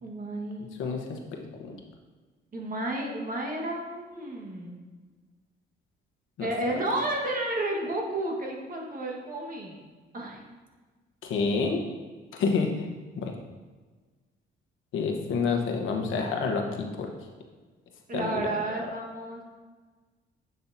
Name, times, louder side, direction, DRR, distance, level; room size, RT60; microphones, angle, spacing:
voice 1, 0.0-0.7 2.5-4.8 6.4-9.8 10.1-10.4 18.1-19.4, right 1 dB, 45° right, 0 dB, 1.6 m, -32 dB
voice 2, 0.8-1.8 6.4-6.8 11.2-11.8 12.3-12.9 13.2-13.3 14.9-17.1 18.1-18.5 18.8-18.9, left 4 dB, 80° left, 2 dB, 1.1 m, -29 dB
9.1 x 5.4 x 2.8 m, 1.4 s
cardioid pair, 90°, 20 cm